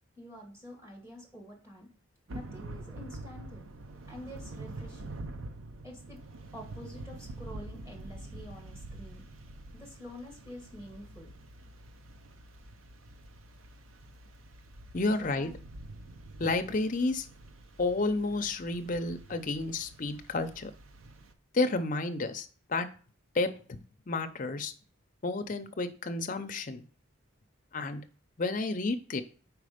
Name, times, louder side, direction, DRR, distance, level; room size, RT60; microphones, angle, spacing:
voice 1, 0.1-1.9 2.3-3.7 4.1-5.2 5.8-6.2 6.5-9.2 9.7-11.3 15.0-15.5, left 1 dB, 15° right, 0 dB, 1.5 m, -48 dB
Thunder / Rain, 2.3-21.3, right 2 dB, 80° right, 0.6 m, -46 dB
voice 2, 14.9-15.5 16.4-17.3 17.8-20.7 21.5-22.9 23.3-23.8 24.1-24.7 25.2-26.8 27.7-28.0 28.4-29.2, left 3 dB, 40° left, 7 dB, 0.5 m, -31 dB
4.6 x 4.2 x 5.0 m, 0.41 s
head